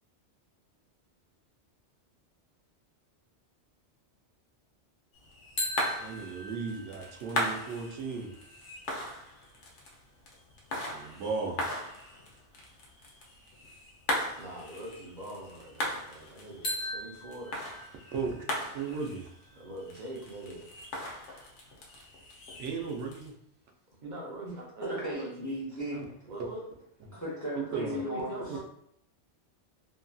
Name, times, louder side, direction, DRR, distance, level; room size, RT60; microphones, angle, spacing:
sound 1, 5.1-23.3, left 1 dB, 85° left, 1.0 m, -39 dB
sound 2, 5.6-9.4 16.6-20.5, left 1 dB, 55° left, 0.9 m, -41 dB
voice 1, 6.0-8.4 10.8-11.6 18.1-19.3 22.6-23.3 25.9-26.0 27.0-27.1 27.6-28.0 28.5-28.6, right 5 dB, 90° right, 2 dB, 0.9 m, -36 dB
voice 2, 14.4-17.6 19.6-20.7 24.0-24.5 24.8-25.5 26.3-26.7 27.7-28.6, right 1 dB, 50° right, -2 dB, 0.6 m, -42 dB
voice 3, 24.8-26.1 27.1-28.6, equal, 20° left, -6 dB, 0.6 m, -36 dB
2.8 x 2.5 x 2.3 m, 0.70 s
omnidirectional pair, 1.2 m